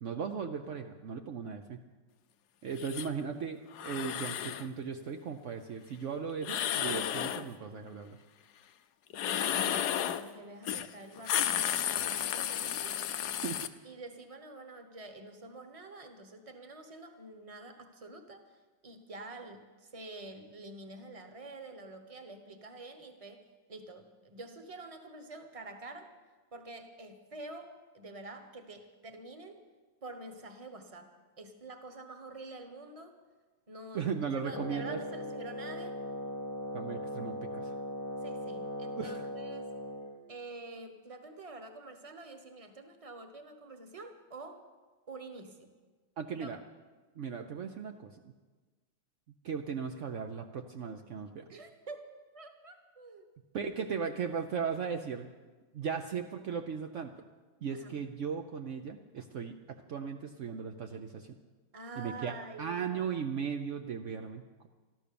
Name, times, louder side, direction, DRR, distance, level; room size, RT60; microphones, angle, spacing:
voice 1, 0.0-1.8 2.6-8.2 13.4-13.6 33.9-35.0 36.7-37.7 39.0-39.2 46.2-46.6 47.2-48.3 49.4-51.4 53.5-55.3 55.7-57.1 57.6-61.3 62.0-62.3 62.6-64.7, right 6 dB, 75° right, 5 dB, 0.6 m, -37 dB
sound 1, 2.8-3.1 3.7-4.7 6.4-7.5 9.1-10.3 10.7-10.9 11.2-13.7, left 10 dB, 65° left, 1.1 m, -32 dB
voice 2, 9.4-13.0 13.8-26.1 26.5-29.6 30.0-33.1 33.7-36.0 38.2-39.7 40.3-44.7 45.1-45.7 46.3-46.5 51.5-52.1 52.3-53.3 57.7-58.0 61.7-63.2, right 2 dB, 20° right, 7 dB, 1.0 m, -47 dB
Wind instrument woodwind instrument, 34.5-40.2, left 1 dB, 35° left, 1.0 m, -39 dB
13.5 x 13.0 x 6.9 m, 1.3 s
omnidirectional pair, 2.2 m